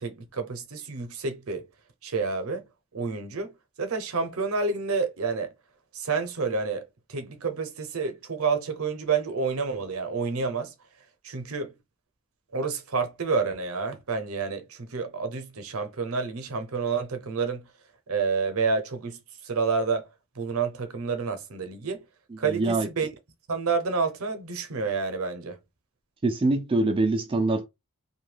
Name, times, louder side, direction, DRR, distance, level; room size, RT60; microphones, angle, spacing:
voice 1, 0.0-1.7 2.0-5.5 5.9-10.7 11.2-11.7 12.5-17.7 18.1-20.1 20.3-22.0 22.4-23.1 23.5-25.6, right 4 dB, 70° right, 0.6 m, -29 dB
voice 2, 22.5-22.9 26.2-27.7, right 2 dB, 25° right, 0.3 m, -24 dB
2.6 x 2.2 x 3.1 m
head